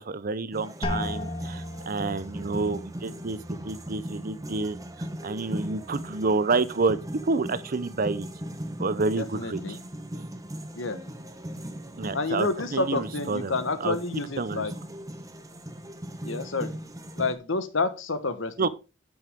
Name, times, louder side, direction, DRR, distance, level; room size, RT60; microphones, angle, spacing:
voice 1, 0.0-8.3 8.8-9.8 10.1-10.3 12.0-13.5 13.8-14.0 14.4-14.6 18.6-18.7, right 3 dB, 50° right, 0.7 m, -29 dB
sound 1, 0.5-17.3, equal, 20° right, 1.1 m, -39 dB
sound 2, 0.8-6.5 6.8-7.5 8.0-8.4, left 1 dB, 25° left, 1.5 m, -38 dB
voice 2, 9.2-9.8 10.8-11.0 12.1-14.7 16.2-16.7 17.1-18.7, left 3 dB, 70° left, 1.3 m, -29 dB
10.5 x 6.3 x 3.6 m
head